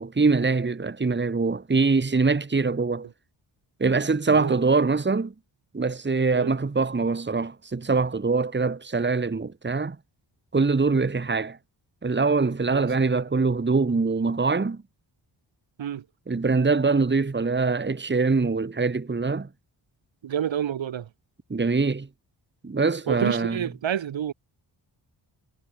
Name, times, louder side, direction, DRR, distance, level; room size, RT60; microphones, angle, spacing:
voice 1, 0.0-3.1 3.8-5.3 5.7-10.0 10.5-11.6 12.0-14.8 16.3-19.5 21.5-22.1 22.6-23.6, right 4 dB, 25° right, 1.5 m, -23 dB
voice 2, 4.3-4.6 6.3-6.5 12.7-12.9 15.8-16.0 20.2-21.1 23.1-24.3, right 9 dB, 70° right, 1.7 m, -29 dB
cardioid pair, 50°, 47 cm